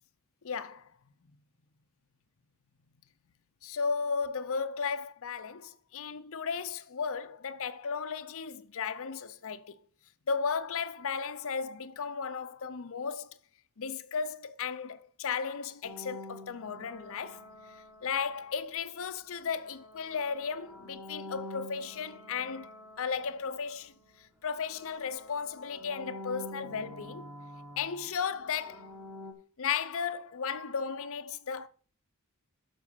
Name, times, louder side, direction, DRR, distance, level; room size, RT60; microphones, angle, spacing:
voice 1, 0.4-0.9 3.6-9.8 10.3-13.3 13.8-17.4 17.7-22.7 23.0-23.9 24.2-27.3 27.8-28.9 29.6-31.7, left 6 dB, 65° left, 0.6 m, -35 dB
sound 1, 15.8-18.7 19.4-24.2 24.5-29.3, left 1 dB, 10° right, 1.7 m, -48 dB
7.2 x 6.2 x 6.8 m
head